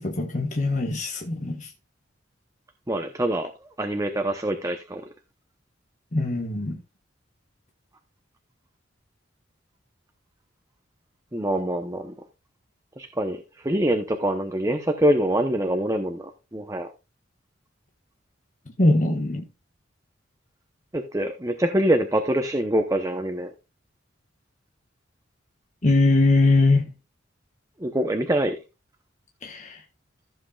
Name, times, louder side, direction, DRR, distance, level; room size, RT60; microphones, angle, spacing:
voice 1, 0.0-1.7 6.1-6.8 18.8-19.4 25.8-26.9 29.4-29.8, left 2 dB, 40° left, 1.4 m, -21 dB
voice 2, 2.9-3.5 3.8-5.0 11.3-12.1 13.0-16.9 20.9-23.5 27.8-28.6, right 1 dB, 15° right, 0.8 m, -25 dB
14.5 x 7.7 x 2.4 m
head